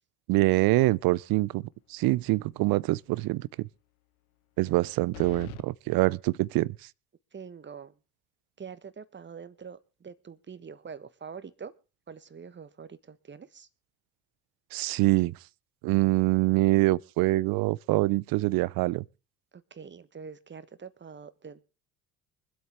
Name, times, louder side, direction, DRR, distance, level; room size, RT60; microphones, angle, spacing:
voice 1, 0.3-1.6 1.9-3.7 4.6-6.7 14.7-15.3 15.8-19.0, right 20 dB, 55° right, 0.6 m, -25 dB
sound 1, 2.0-2.5 2.8-2.9 5.1-5.7, left 17 dB, 90° left, 0.6 m, -44 dB
voice 2, 7.3-8.0 8.6-11.7 12.1-13.7 19.5-21.6, right 6 dB, 25° right, 1.3 m, -45 dB
24.5 x 8.2 x 3.6 m
hypercardioid pair, 60°, 42 cm